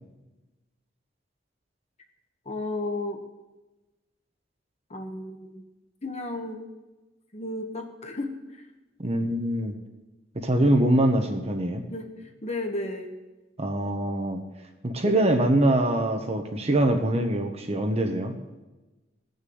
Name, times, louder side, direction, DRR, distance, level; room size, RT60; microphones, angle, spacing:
voice 1, 2.4-3.2 4.9-5.6 6.0-6.6 7.3-8.6 10.6-10.8 11.9-13.1, left 2 dB, 35° left, 5 dB, 1.3 m, -33 dB
voice 2, 9.0-9.7 10.3-11.8 13.6-14.4 14.8-18.3, right 1 dB, 35° right, 5 dB, 1.1 m, -23 dB
16.5 x 6.7 x 7.8 m, 1.1 s
head